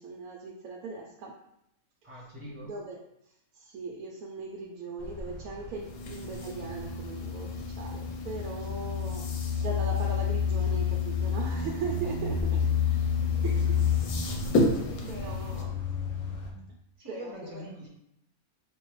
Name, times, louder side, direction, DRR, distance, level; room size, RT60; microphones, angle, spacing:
voice 1, 0.0-1.3 2.6-3.0 3.5-13.1 13.4-13.8 15.1-15.8 17.1-17.6, right 3 dB, 80° right, -2 dB, 1.0 m, -39 dB
voice 2, 2.0-2.7 13.8-13.9 17.0-17.9, equal, 25° right, -4 dB, 0.8 m, -43 dB
sound 1, 5.0-16.5, left 7 dB, 60° left, 1.1 m, -31 dB
sound 2, 5.8-15.6, left 1 dB, 90° left, 1.2 m, -34 dB
5.2 x 2.3 x 3.0 m, 0.77 s
omnidirectional pair, 1.5 m